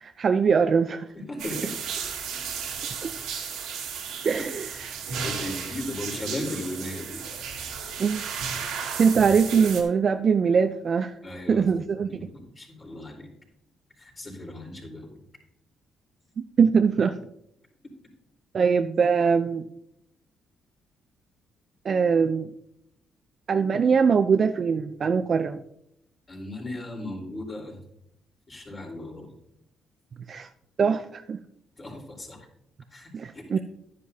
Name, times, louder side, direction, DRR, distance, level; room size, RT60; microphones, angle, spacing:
voice 1, 0.0-1.1 3.0-3.1 4.2-4.5 8.0-8.2 9.0-11.1 11.5-12.1 16.4-17.1 18.5-19.6 21.8-22.5 23.5-25.6 30.3-30.5 30.8-31.4 33.1-33.6, right 6 dB, 50° right, 8 dB, 0.5 m, -22 dB
voice 2, 1.1-1.8 4.4-4.5 5.1-7.3 11.2-11.7 12.1-13.3 14.0-15.1 26.3-27.8 28.5-29.4 31.8-32.5 32.9-33.4, left 1 dB, 30° left, 0 dB, 4.0 m, -36 dB
sound 1, 1.4-9.8, right 6 dB, 90° right, 2.2 m, -34 dB
11.5 x 10.0 x 2.8 m, 0.77 s
cardioid pair, 90°, 0 cm